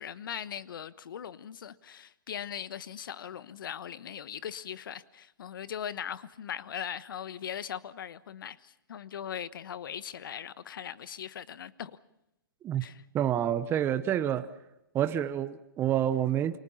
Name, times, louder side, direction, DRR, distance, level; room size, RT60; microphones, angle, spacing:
voice 1, 0.0-11.9 12.8-13.0, left 9 dB, 65° left, 1.2 m, -40 dB
voice 2, 13.1-14.5 14.9-16.6, right 10 dB, 20° right, 0.9 m, -28 dB
28.0 x 24.0 x 5.6 m
hypercardioid pair, 135°, 12 cm